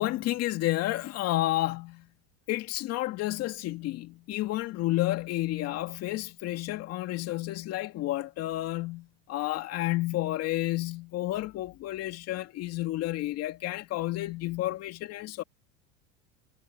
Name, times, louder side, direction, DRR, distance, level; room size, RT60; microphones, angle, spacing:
voice 1, 0.0-2.1 2.5-15.4, left 16 dB, 50° left, 2.2 m, -31 dB
supercardioid pair, 110°, 31 cm